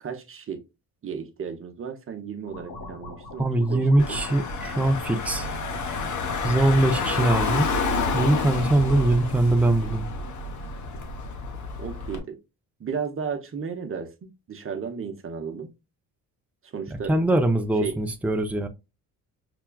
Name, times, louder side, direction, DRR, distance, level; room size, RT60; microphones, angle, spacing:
voice 1, 0.0-0.6 1.0-4.2 6.7-7.2 11.8-12.4 12.8-15.7 16.6-17.1 17.8-17.9, right 6 dB, 35° right, 0.8 m, -34 dB
sound 1, 2.5-9.1, left 2 dB, 75° left, 1.4 m, -41 dB
voice 2, 3.4-5.5 6.4-7.7 8.1-10.1 16.9-18.7, right 1 dB, 5° right, 0.5 m, -22 dB
Car / Engine, 4.0-12.2, left 3 dB, 55° left, 1.0 m, -29 dB
5.8 x 2.2 x 2.2 m
cardioid pair, 85°, 35 cm